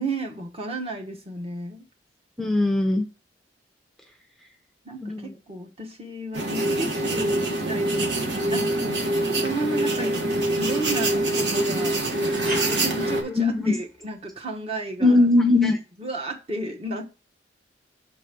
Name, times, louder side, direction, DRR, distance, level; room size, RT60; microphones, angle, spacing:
voice 1, 0.0-1.8 4.8-12.0 12.4-15.2 16.0-17.1, right 2 dB, 35° right, 3 dB, 1.1 m, -33 dB
voice 2, 2.4-3.0 5.0-5.3 13.3-13.8 15.0-15.8, left 2 dB, ahead, 3 dB, 0.6 m, -20 dB
sound 1, 6.3-13.2, right 1 dB, 70° right, 1.4 m, -25 dB
sound 2, 7.8-14.1, right 1 dB, 90° right, 3.2 m, -41 dB
6.1 x 4.1 x 5.0 m, 0.32 s
head